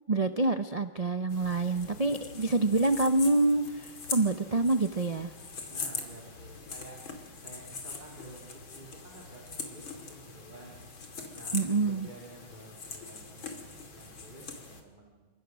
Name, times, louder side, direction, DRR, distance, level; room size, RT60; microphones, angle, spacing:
voice 1, 0.1-5.3 11.5-12.1, right 2 dB, 50° right, 8 dB, 0.4 m, -27 dB
sound 1, 1.3-14.8, left 4 dB, 80° left, 3.4 m, -42 dB
voice 2, 5.7-7.0 7.4-10.8 11.3-15.3, right 2 dB, 20° right, -2 dB, 3.9 m, -51 dB
28.0 x 25.0 x 6.4 m, 1.4 s
omnidirectional pair, 2.1 m